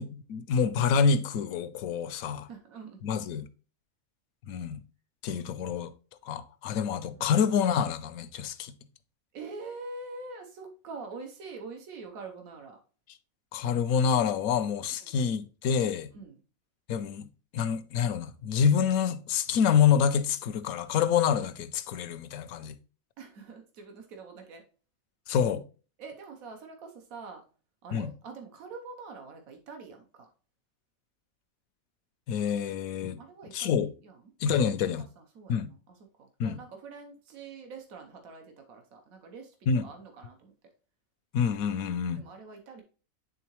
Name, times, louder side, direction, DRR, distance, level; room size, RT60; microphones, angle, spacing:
voice 1, 0.0-2.5 3.0-3.5 4.5-4.8 5.2-5.9 6.2-8.7 13.5-16.1 16.9-17.3 17.5-22.8 25.3-25.6 27.9-28.1 32.3-33.2 33.5-33.9 34.4-35.0 35.5-35.7 36.4-36.6 39.7-39.9 41.3-42.2, left 7 dB, 85° left, 1.0 m, -27 dB
voice 2, 2.2-3.0 7.2-7.3 9.3-12.8 15.0-15.2 16.1-16.4 23.2-24.6 26.0-27.4 27.8-30.3 33.2-34.2 34.6-34.7 35.2-39.5 39.8-40.5 42.2-42.8, right 4 dB, 85° right, 1.3 m, -45 dB
9.3 x 3.7 x 3.0 m
omnidirectional pair, 1.4 m